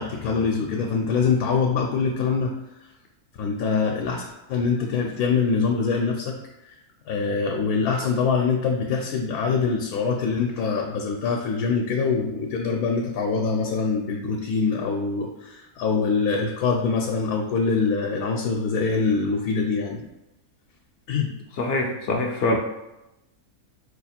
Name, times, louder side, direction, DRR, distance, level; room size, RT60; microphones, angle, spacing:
voice 1, 0.0-2.5 3.4-6.4 7.1-20.0 21.1-21.3, left 5 dB, 85° left, 1 dB, 1.1 m, -24 dB
voice 2, 21.6-22.6, left 2 dB, 65° left, 2 dB, 0.6 m, -24 dB
4.9 x 2.4 x 4.2 m, 0.93 s
omnidirectional pair, 1.6 m